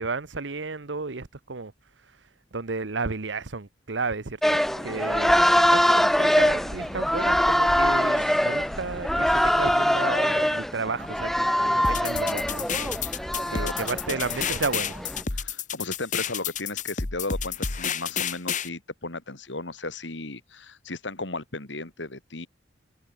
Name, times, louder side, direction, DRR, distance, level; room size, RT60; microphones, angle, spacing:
voice 1, 0.0-1.7 2.5-13.0 13.5-14.9, right 4 dB, 90° right, 1.2 m, -32 dB
sound 1, 4.4-15.2, equal, ahead, 0.4 m, -23 dB
sound 2, 4.7-15.3, right 1 dB, 50° right, 6.9 m, -48 dB
sound 3, 11.8-18.7, left 7 dB, 45° left, 1.3 m, -30 dB
voice 2, 13.1-14.2 15.3-22.5, left 2 dB, 85° left, 3.2 m, -35 dB
head